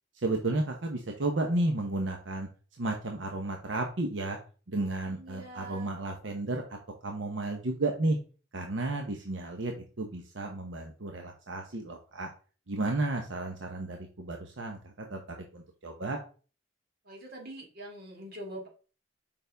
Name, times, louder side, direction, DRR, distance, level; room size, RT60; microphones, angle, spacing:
voice 1, 0.1-2.5 2.8-4.4 4.7-6.6 7.0-8.2 8.5-12.3 12.7-16.2, right 2 dB, 85° right, 3 dB, 1.0 m, -32 dB
voice 2, 4.7-5.9 17.0-18.7, right 1 dB, 55° right, 0 dB, 2.0 m, -44 dB
6.8 x 5.3 x 3.4 m, 0.37 s
head